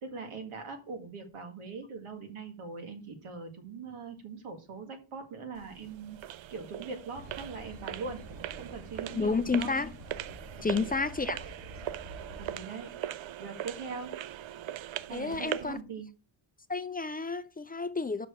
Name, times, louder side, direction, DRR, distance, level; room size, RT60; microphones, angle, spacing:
voice 1, 0.0-6.2 6.5-8.2 8.5-9.7 10.6-11.0 12.4-12.9 13.4-14.2 15.1-16.1, right 4 dB, 85° right, 2.0 m, -41 dB
sound 1, 5.5-15.8, right 12 dB, 65° right, 0.5 m, -40 dB
sound 2, 7.1-12.6, right 1 dB, 45° right, 2.0 m, -48 dB
voice 2, 9.1-9.9 10.6-11.5 15.1-15.8 16.7-18.3, left 4 dB, 20° left, 0.3 m, -31 dB
6.0 x 4.9 x 6.5 m
wide cardioid pair, 145°, 49 cm